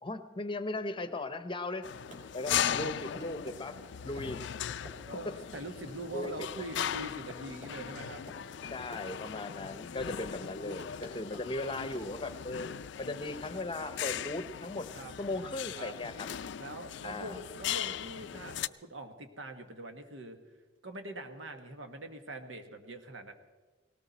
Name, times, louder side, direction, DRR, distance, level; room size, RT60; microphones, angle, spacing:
voice 1, 0.0-1.9 2.3-4.4 6.1-6.3 6.7-6.8 8.7-12.7 13.0-14.9 15.2-16.3 17.0-17.4, left 2 dB, 25° left, 11 dB, 0.8 m, -37 dB
sound 1, 1.8-18.7, left 9 dB, 65° left, 0.4 m, -38 dB
Run, 1.9-12.3, equal, 40° right, 2.9 m, -51 dB
voice 2, 5.0-8.2 14.9-15.1 15.7-16.0 16.6-20.4 20.8-23.3, right 2 dB, 85° right, 7 dB, 1.4 m, -43 dB
18.5 x 18.0 x 4.1 m, 1.3 s
head